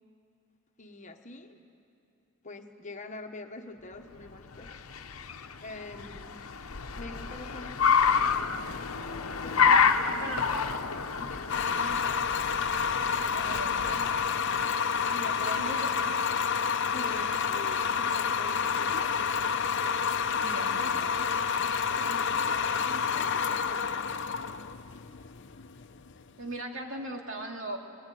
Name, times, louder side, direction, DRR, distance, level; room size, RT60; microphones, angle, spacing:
voice 1, 0.8-1.6 2.4-4.7 5.6-6.4 7.0-8.9 9.4-10.6 11.2-11.9 13.2-14.0 15.1-15.8 16.8-19.4 20.2-21.3 22.1-24.2, left 2 dB, 35° left, 5 dB, 1.2 m, -45 dB
Car, 4.3-14.5, left 6 dB, 85° left, 0.9 m, -29 dB
sound 1, 11.5-26.4, left 6 dB, 55° left, 0.7 m, -29 dB
voice 2, 11.7-12.4 13.3-14.2 15.4-15.9 17.0-17.2 20.4-21.0 26.4-27.8, right 1 dB, 65° right, 1 dB, 2.6 m, -39 dB
22.5 x 21.5 x 9.3 m, 2.6 s
head